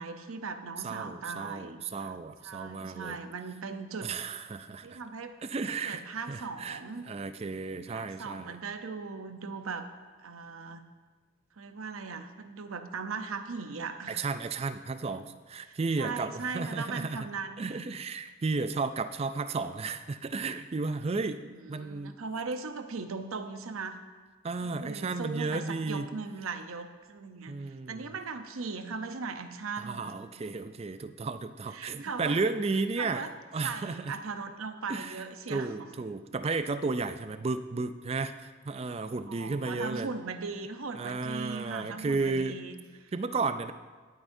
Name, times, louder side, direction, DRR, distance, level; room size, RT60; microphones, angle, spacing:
voice 1, 0.0-2.1 2.4-4.1 4.8-5.4 5.7-7.1 7.9-9.9 10.2-10.8 11.6-14.2 15.6-17.7 21.4-24.0 24.6-27.6 27.9-30.1 31.7-32.4 33.0-33.3 33.6-35.9 39.3-43.1, right 4 dB, 85° right, 8 dB, 0.7 m, -39 dB
voice 2, 0.8-3.2 4.0-5.0 5.4-6.8 7.1-8.6 14.1-17.3 17.6-22.2 24.4-26.1 27.5-28.1 29.8-33.3 33.5-34.2 34.9-40.1 41.0-42.6 43.1-43.7, right 3 dB, 30° right, 11 dB, 0.4 m, -33 dB
17.0 x 8.9 x 2.7 m, 1.4 s
head